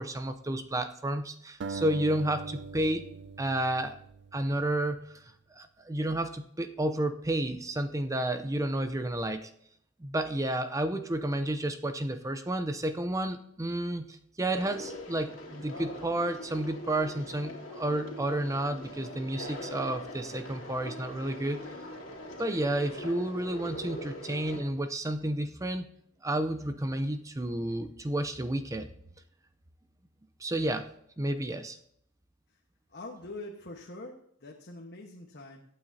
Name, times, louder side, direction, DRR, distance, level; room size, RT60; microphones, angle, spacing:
voice 1, 0.0-3.1 3.4-4.0 4.3-9.5 10.0-21.6 22.4-25.9 26.2-28.9 30.4-30.9 31.2-31.8, right 1 dB, 15° right, 9 dB, 0.6 m, -31 dB
sound 1, 1.6-4.8, right 4 dB, 60° right, 0.5 m, -41 dB
Conversation, 14.6-24.6, left 1 dB, 90° left, 2.5 m, -42 dB
voice 2, 32.9-35.6, left 2 dB, 55° left, 0 dB, 1.3 m, -44 dB
22.5 x 8.9 x 2.8 m, 0.70 s
head